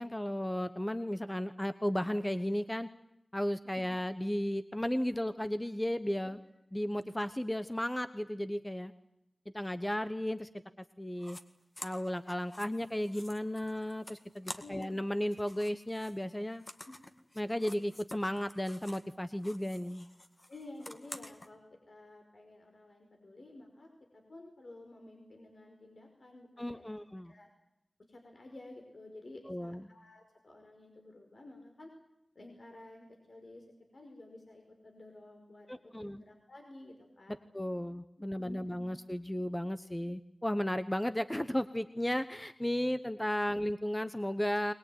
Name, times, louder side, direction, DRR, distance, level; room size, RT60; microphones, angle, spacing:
voice 1, 0.0-2.9 3.3-6.4 6.7-8.9 9.5-10.5 10.8-11.4 11.8-16.6 17.4-20.1 26.6-27.3 29.5-29.8 35.7-36.2 37.5-44.7, left 1 dB, 15° left, 11 dB, 1.0 m, -34 dB
sound 1, 11.2-11.4 11.7-15.0 15.2-19.1 19.4-21.5, left 1 dB, 35° left, 2.0 m, -49 dB
voice 2, 14.6-14.9 16.8-16.9 20.5-27.0 27.2-27.5 28.1-31.9 32.3-33.7 33.9-37.4 38.4-38.8, left 2 dB, 60° left, 3 dB, 5.0 m, -52 dB
22.0 x 21.0 x 9.3 m, 0.83 s
wide cardioid pair, 70°, 0 cm